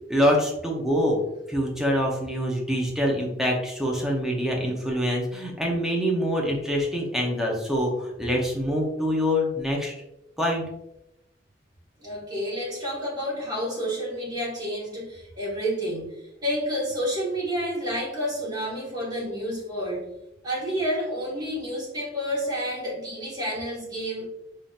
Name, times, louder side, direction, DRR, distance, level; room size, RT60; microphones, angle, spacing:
voice 1, 0.1-1.2 1.5-9.9 10.4-10.6, equal, 5° right, -2 dB, 0.7 m, -25 dB
voice 2, 12.0-16.1 16.4-20.1 20.4-24.3, equal, 20° right, -5 dB, 1.4 m, -29 dB
4.9 x 2.7 x 2.4 m, 0.87 s
head